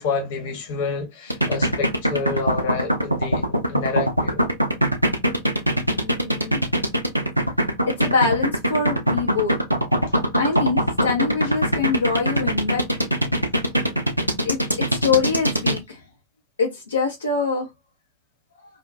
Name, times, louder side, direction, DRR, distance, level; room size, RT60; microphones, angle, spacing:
voice 1, 0.0-4.4, left 4 dB, 50° left, 0.9 m, -28 dB
sound 1, 1.3-15.8, equal, 90° right, 0.4 m, -21 dB
voice 2, 5.9-6.6 7.9-9.5 10.0-12.8 14.4-16.0 16.6-17.7, left 4 dB, 75° left, 0.6 m, -24 dB
2.6 x 2.1 x 2.4 m
figure-of-eight pair, 90°, 0 cm